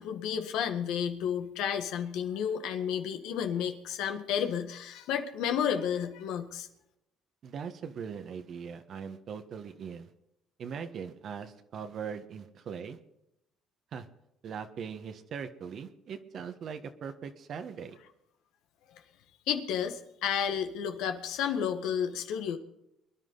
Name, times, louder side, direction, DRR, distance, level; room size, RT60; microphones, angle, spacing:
voice 1, 0.0-6.7 19.5-22.6, left 8 dB, 80° left, 6 dB, 1.8 m, -31 dB
voice 2, 7.4-10.1 10.6-13.0 13.9-14.1 14.4-18.0, right 7 dB, 55° right, 7 dB, 1.5 m, -40 dB
23.5 x 11.0 x 4.0 m, 0.85 s
supercardioid pair, 90°, 0 cm